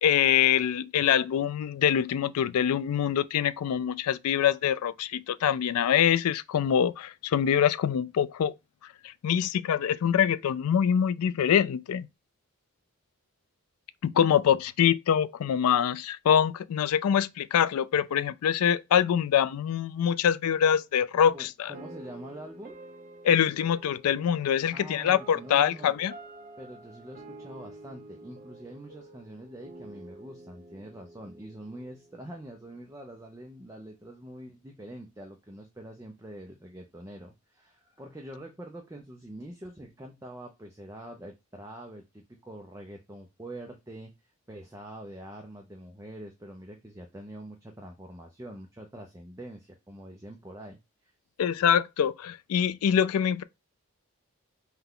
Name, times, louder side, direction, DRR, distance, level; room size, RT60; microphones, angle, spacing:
voice 1, 0.0-8.5 9.0-12.1 14.0-21.7 23.2-26.1 51.4-53.4, left 8 dB, 85° left, 0.3 m, -24 dB
voice 2, 21.3-22.8 24.7-25.9 26.6-51.1, right 1 dB, 15° right, 0.5 m, -45 dB
sound 1, 21.7-32.8, right 2 dB, 40° right, 0.8 m, -49 dB
5.7 x 2.3 x 3.6 m
head